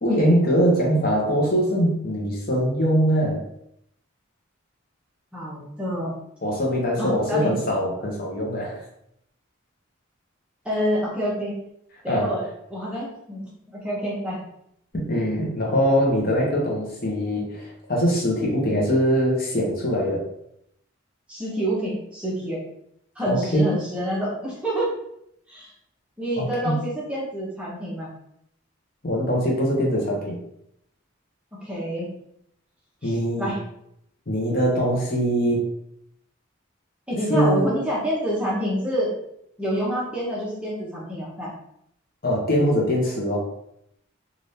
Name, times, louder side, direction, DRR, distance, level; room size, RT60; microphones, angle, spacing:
voice 1, 0.0-3.4 6.4-8.8 12.1-12.4 14.9-20.2 23.2-23.7 26.4-26.8 29.0-30.4 33.0-33.5 34.3-35.7 37.1-37.7 42.2-43.5, equal, 45° left, -2 dB, 0.8 m, -22 dB
voice 2, 5.3-6.1 7.0-7.5 10.6-11.6 12.0-12.4 12.7-14.4 21.3-22.6 23.2-24.9 25.5-25.7 26.2-28.1 31.6-32.1 33.0-33.6 37.1-39.1 39.6-41.5, equal, 5° right, -6 dB, 0.7 m, -27 dB
3.4 x 2.5 x 2.7 m, 0.75 s
head